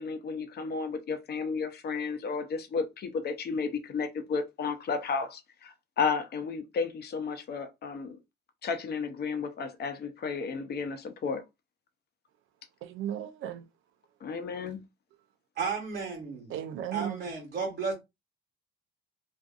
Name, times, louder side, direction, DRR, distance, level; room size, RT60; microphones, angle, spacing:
voice 1, 0.0-8.2 8.6-11.4 14.2-14.8, left 5 dB, 55° left, 0.7 m, -33 dB
voice 2, 12.8-13.6 16.5-17.2, right 10 dB, 85° right, 0.5 m, -35 dB
voice 3, 15.6-16.4 16.9-17.9, right 5 dB, 55° right, 1.1 m, -33 dB
2.5 x 2.5 x 2.4 m
cardioid pair, 90°, 20 cm